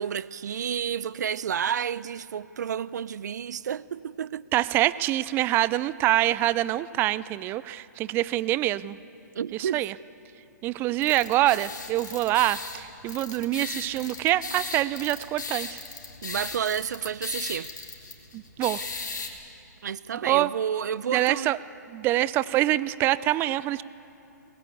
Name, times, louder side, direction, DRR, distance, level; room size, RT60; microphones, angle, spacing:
voice 1, 0.0-4.4 9.3-9.9 16.2-17.7 19.8-21.5, right 8 dB, 70° right, 0.6 m, -30 dB
voice 2, 4.5-9.0 9.6-9.9 10.6-15.8 18.3-18.8 20.3-20.5 21.1-21.6 21.9-23.8, right 15 dB, 20° right, 0.4 m, -25 dB
sound 1, 11.0-19.3, left 4 dB, 85° left, 3.9 m, -38 dB
22.0 x 20.5 x 8.6 m
hypercardioid pair, 140°, 10 cm